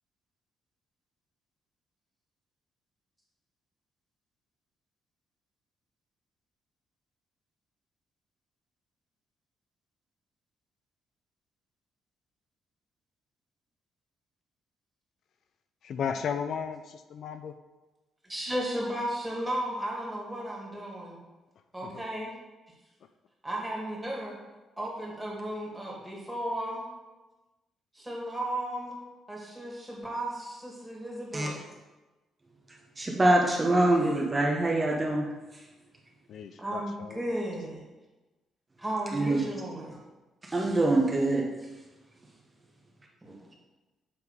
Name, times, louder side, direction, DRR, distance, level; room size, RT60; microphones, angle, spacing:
voice 1, 15.8-17.5 21.8-22.0 36.3-37.2, left 7 dB, 65° left, 9 dB, 0.4 m, -35 dB
voice 2, 18.2-21.2 21.7-22.3 23.4-24.4 24.8-26.8 27.9-29.0 29.3-31.6 36.6-37.8 38.8-40.0 43.2-43.4, right 1 dB, 5° right, -4 dB, 2.1 m, -34 dB
voice 3, 33.0-35.3 39.1-39.5 40.4-41.4, right 2 dB, 25° right, -1 dB, 1.0 m, -24 dB
6.9 x 3.5 x 4.8 m, 1.1 s
cardioid pair, 90°, 0 cm